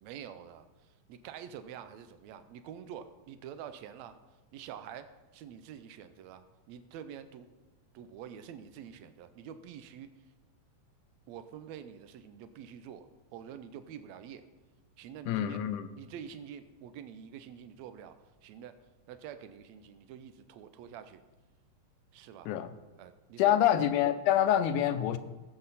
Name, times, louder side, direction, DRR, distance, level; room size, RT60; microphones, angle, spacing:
voice 1, 0.0-0.7 1.1-4.2 4.5-7.5 7.9-10.1 11.3-14.4 15.0-15.6 16.0-18.2 18.4-18.8 19.1-21.2 22.1-22.5 23.0-23.7, right 9 dB, 80° right, 10 dB, 1.6 m, -47 dB
voice 2, 15.3-15.9 22.5-22.7 23.4-25.2, left 11 dB, 75° left, 11 dB, 2.0 m, -26 dB
19.0 x 7.8 x 4.1 m, 1.2 s
omnidirectional pair, 3.9 m